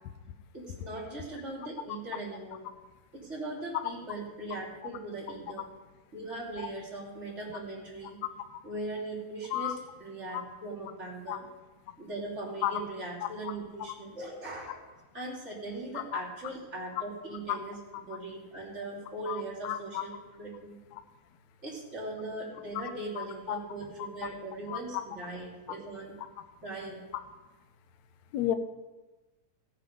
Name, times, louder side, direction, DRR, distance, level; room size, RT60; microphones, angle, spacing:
voice 1, 0.5-2.7 3.1-5.7 6.1-8.2 8.6-11.4 12.0-20.8 21.6-26.2 26.6-27.1, right 2 dB, 20° right, -4 dB, 2.7 m, -40 dB
voice 2, 19.6-20.0 23.2-23.6 24.7-24.8 28.3-28.5, left 12 dB, 80° left, 10 dB, 1.6 m, -31 dB
15.0 x 8.6 x 5.2 m, 1.2 s
omnidirectional pair, 4.1 m